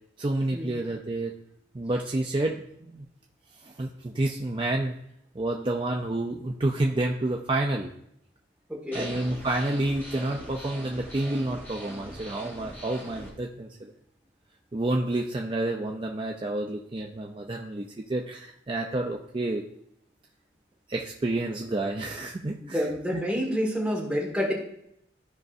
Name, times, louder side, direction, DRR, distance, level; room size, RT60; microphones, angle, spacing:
voice 1, 0.2-1.3 1.7-3.1 3.6-5.0 5.4-7.9 8.9-13.9 14.7-19.6 20.9-22.8 23.1-23.2, right 2 dB, 25° right, 1 dB, 0.5 m, -29 dB
voice 2, 8.7-9.1 22.6-24.5, equal, 5° right, -3 dB, 1.8 m, -28 dB
sound 1, 8.9-13.3, equal, 10° left, 2.4 m, -41 dB
13.5 x 5.2 x 2.6 m, 0.74 s
head